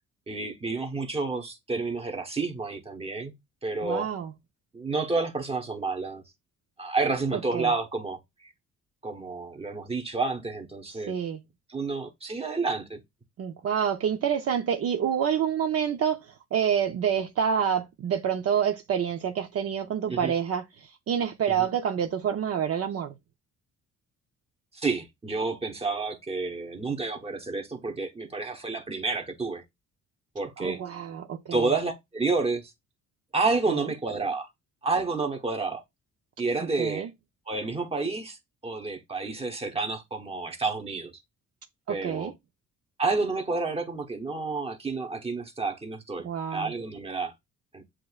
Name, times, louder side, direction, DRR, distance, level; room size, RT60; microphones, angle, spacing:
voice 1, 0.3-3.3 3.6-4.1 4.7-6.2 6.8-8.5 9.0-11.2 11.7-13.0 20.1-20.3 21.5-21.7 24.7-29.6 30.3-30.8 31.5-32.7 33.3-34.5 34.8-35.8 36.4-37.1 37.5-41.1 41.9-42.3 43.0-47.3 47.7-47.8, right 3 dB, 20° right, 1.1 m, -30 dB
voice 2, 3.8-4.3 7.5-7.7 11.1-11.4 13.4-16.2 16.5-20.6 21.1-23.1 30.6-31.7 33.7-33.8 36.8-37.1 41.9-42.3 46.2-46.7, right 8 dB, 55° right, 0.6 m, -27 dB
7.6 x 2.6 x 2.4 m
cardioid pair, 90°, 30 cm